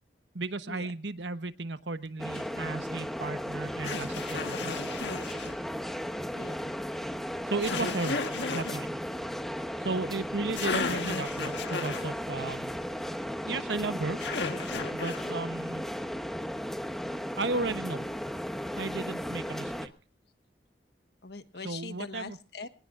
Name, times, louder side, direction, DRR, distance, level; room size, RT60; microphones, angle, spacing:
voice 1, 0.3-5.1 7.5-9.0 9.8-12.7 13.5-14.2 14.9-15.9 17.3-18.1 18.7-19.9 21.6-22.4, right 3 dB, 90° right, 11 dB, 1.1 m, -35 dB
sound 1, 2.2-19.9, equal, ahead, 1.1 m, -35 dB
sound 2, 2.3-2.5 3.8-5.5 7.6-8.8 10.2-10.3 10.6-12.1 14.2-15.3, left 4 dB, 85° left, 1.6 m, -34 dB
voice 2, 6.3-6.8 21.2-22.7, left 4 dB, 65° left, 9 dB, 1.4 m, -42 dB
24.5 x 19.5 x 2.5 m, 0.37 s
head